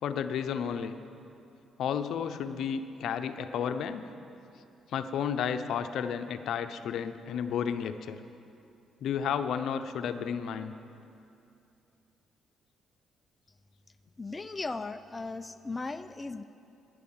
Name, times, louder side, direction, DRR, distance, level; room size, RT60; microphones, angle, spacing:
voice 1, 0.0-0.9 1.8-4.1 4.9-8.2 9.0-10.7, left 7 dB, 75° left, 9 dB, 0.6 m, -32 dB
voice 2, 14.2-16.4, left 3 dB, 20° left, 9 dB, 0.4 m, -37 dB
11.5 x 10.0 x 8.9 m, 2.7 s
cardioid pair, 90°, 0 cm